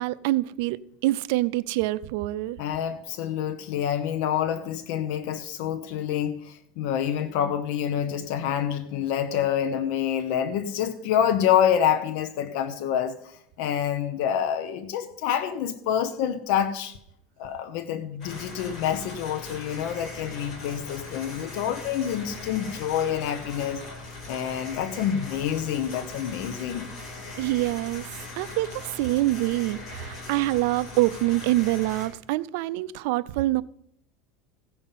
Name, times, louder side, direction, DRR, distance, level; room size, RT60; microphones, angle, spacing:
voice 1, 0.0-2.6 27.4-28.1 28.4-33.6, right 18 dB, 70° right, 0.4 m, -25 dB
voice 2, 2.6-17.0 17.4-23.8 24.3-26.9, left 9 dB, 65° left, 0.9 m, -27 dB
sound 1, 18.2-32.1, left 2 dB, 35° left, 4.0 m, -40 dB
16.0 x 5.6 x 5.7 m
supercardioid pair, 130°, 0 cm